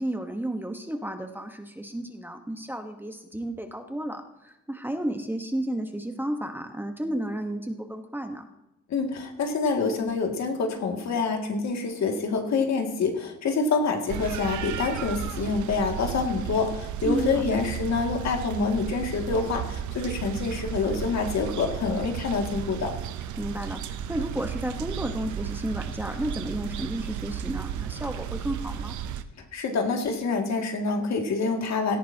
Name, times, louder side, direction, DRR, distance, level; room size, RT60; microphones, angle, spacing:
voice 1, 0.0-8.5 17.0-17.6 23.4-28.9, right 1 dB, 5° right, 5 dB, 1.2 m, -32 dB
voice 2, 8.9-22.9 29.5-32.0, left 4 dB, 65° left, 2 dB, 2.3 m, -27 dB
sound 1, 14.1-29.2, right 9 dB, 75° right, 0.8 m, -34 dB
17.5 x 13.5 x 2.9 m, 0.92 s
cardioid pair, 90°, 30 cm